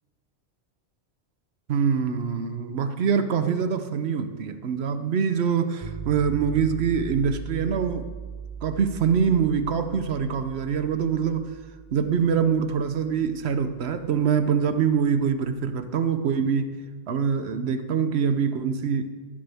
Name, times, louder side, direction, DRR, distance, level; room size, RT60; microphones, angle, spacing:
voice 1, 1.7-8.1 8.6-11.5 11.9-16.7 17.1-19.1, right 7 dB, 70° right, 10 dB, 1.0 m, -24 dB
sound 1, 5.8-15.7, right 7 dB, 35° right, 1.1 m, -40 dB
14.0 x 12.0 x 3.5 m, 1.4 s
omnidirectional pair, 1.2 m